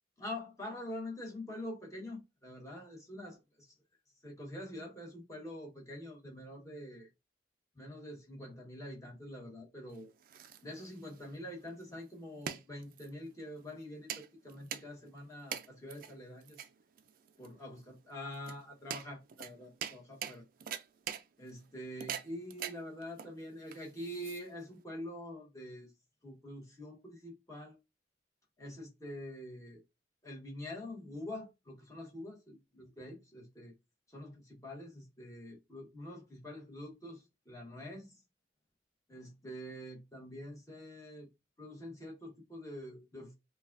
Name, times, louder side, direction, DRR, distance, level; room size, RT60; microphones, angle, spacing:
voice 1, 0.2-3.4 4.2-7.1 7.8-10.1 10.6-16.6 17.4-20.4 21.4-25.9 26.2-27.8 28.6-29.8 30.2-33.7 34.1-38.1 39.1-41.3 41.6-43.3, left 1 dB, 20° left, 1.3 m, -45 dB
sound 1, 9.9-24.8, right 9 dB, 50° right, 0.4 m, -45 dB
5.2 x 2.3 x 2.5 m
head